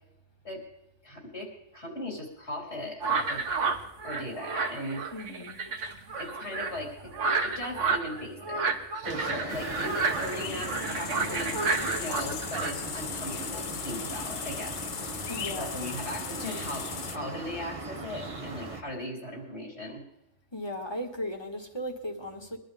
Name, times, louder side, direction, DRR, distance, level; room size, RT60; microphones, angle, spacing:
voice 1, 1.0-3.4 4.0-5.0 6.2-7.1 7.4-8.7 9.0-14.8 15.6-20.0, left 1 dB, 65° left, -1 dB, 4.3 m, -38 dB
sound 1, 3.0-12.7, right 4 dB, 85° right, 1.6 m, -31 dB
voice 2, 5.1-5.6 15.3-15.8 20.5-22.6, equal, 20° left, 3 dB, 1.9 m, -36 dB
sound 2, 9.0-18.8, right 3 dB, 30° right, 1.3 m, -40 dB
sound 3, 9.5-17.2, left 8 dB, 50° left, 0.7 m, -38 dB
23.0 x 12.0 x 3.6 m, 0.86 s
omnidirectional pair, 1.2 m